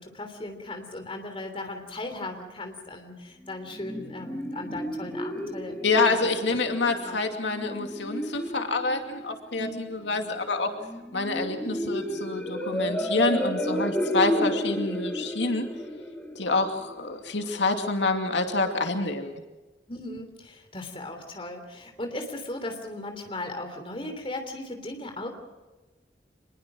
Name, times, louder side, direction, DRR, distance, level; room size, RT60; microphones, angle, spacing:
voice 1, 0.0-6.2 6.8-7.2 9.6-9.9 11.6-12.0 19.9-25.3, left 2 dB, 30° left, 5 dB, 3.2 m, -37 dB
sound 1, 3.4-17.4, equal, 10° left, 2.5 m, -32 dB
voice 2, 5.8-10.7 11.1-15.7 16.4-19.4, left 3 dB, 85° left, 5 dB, 2.5 m, -27 dB
26.0 x 21.5 x 6.3 m, 1.1 s
head